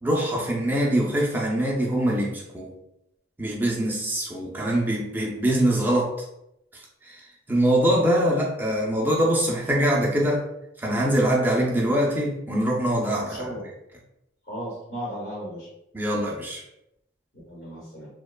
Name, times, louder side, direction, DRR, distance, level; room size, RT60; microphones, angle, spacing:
voice 1, 0.0-2.7 3.4-6.1 7.0-7.2 7.5-10.4 10.8-13.5 15.9-16.6, right 1 dB, 10° right, -3 dB, 0.4 m, -23 dB
voice 2, 13.3-13.6 14.4-15.7 17.5-18.1, equal, 55° left, -7 dB, 1.0 m, -35 dB
2.8 x 2.1 x 2.2 m, 0.83 s
head